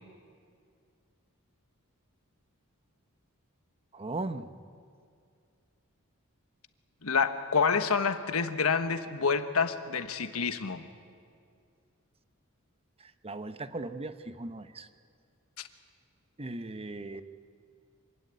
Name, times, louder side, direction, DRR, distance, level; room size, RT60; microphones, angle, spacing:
voice 1, 3.9-4.5 13.0-14.9 16.4-17.2, right 2 dB, 30° right, 11 dB, 0.9 m, -38 dB
voice 2, 7.0-10.9 15.6-15.7, left 5 dB, 75° left, 9 dB, 1.3 m, -28 dB
26.0 x 16.5 x 9.8 m, 2.3 s
head